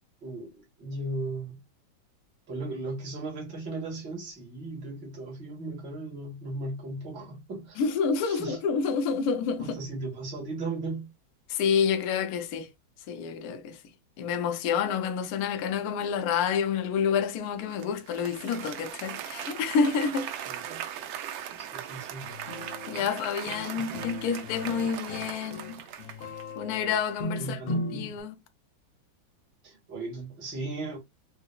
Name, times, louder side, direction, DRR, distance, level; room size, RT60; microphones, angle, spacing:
voice 1, 0.2-1.6 2.5-7.8 8.3-8.6 9.6-11.1 20.4-20.8 21.6-22.3 23.6-23.9 27.3-28.1 29.6-31.0, right 2 dB, 60° right, 2.5 m, -37 dB
voice 2, 7.8-9.8 11.5-12.7 13.1-13.8 14.2-20.3 22.9-25.8 26.6-28.3, left 6 dB, 70° left, 0.9 m, -28 dB
Applause, 17.7-26.6, right 10 dB, 80° right, 1.4 m, -39 dB
sound 1, 22.2-28.2, left 1 dB, 85° left, 1.6 m, -38 dB
6.1 x 2.0 x 2.3 m
omnidirectional pair, 2.2 m